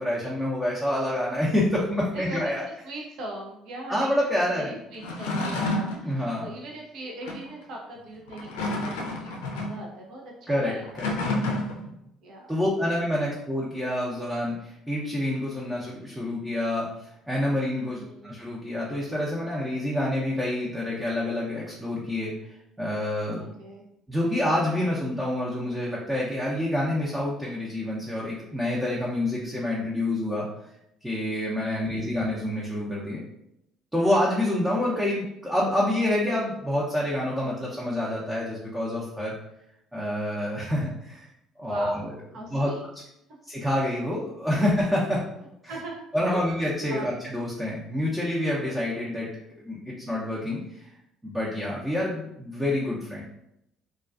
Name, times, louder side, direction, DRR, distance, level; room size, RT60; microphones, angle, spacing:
voice 1, 0.0-2.6 3.9-4.7 6.0-6.5 10.5-11.1 12.5-23.5 24.1-30.5 31.0-33.2 33.9-39.4 39.9-41.3 41.6-42.1 42.5-43.0 43.5-45.2 45.6-45.8 46.1-49.3 49.6-50.9 51.2-53.2, left 1 dB, 10° right, -5 dB, 0.6 m, -27 dB
voice 2, 2.1-2.5 2.8-4.1 4.5-10.8 12.2-12.6 17.9-18.3 23.6-23.8 31.8-32.1 40.7-40.8 41.6-42.1 42.3-42.8 45.7-46.5 46.9-47.1, right 1 dB, 65° right, -1 dB, 0.6 m, -40 dB
sound 1, 4.9-6.1 7.2-7.5 8.3-9.8 10.8-11.9, left 2 dB, 85° left, 0.4 m, -29 dB
2.3 x 2.3 x 2.4 m, 0.81 s
hypercardioid pair, 65°, 0 cm